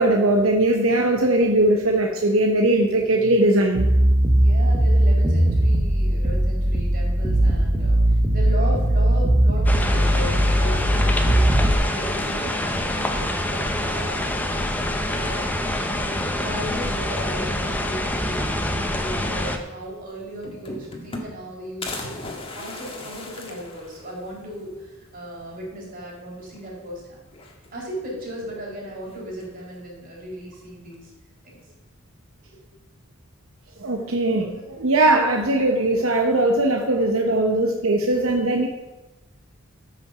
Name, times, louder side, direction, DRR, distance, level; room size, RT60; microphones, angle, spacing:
voice 1, 0.0-3.8 33.8-38.7, right 2 dB, 80° right, 1 dB, 1.2 m, -20 dB
sound 1, 3.7-11.7, right 1 dB, 25° right, 1.3 m, -19 dB
voice 2, 4.4-8.0 8.3-14.3 14.8-15.5 16.0-27.1 27.7-31.1 31.4-31.6, equal, 45° right, -4 dB, 5.0 m, -36 dB
sound 2, 9.7-19.6, left 1 dB, 10° left, 0.9 m, -26 dB
sound 3, 19.8-19.9 20.2-21.5 21.8-24.4 24.8-24.9 25.2-25.3 26.4-26.9 27.3-28.0 29.1-29.6, left 2 dB, 25° left, 1.8 m, -37 dB
13.0 x 6.3 x 6.8 m, 1.1 s
head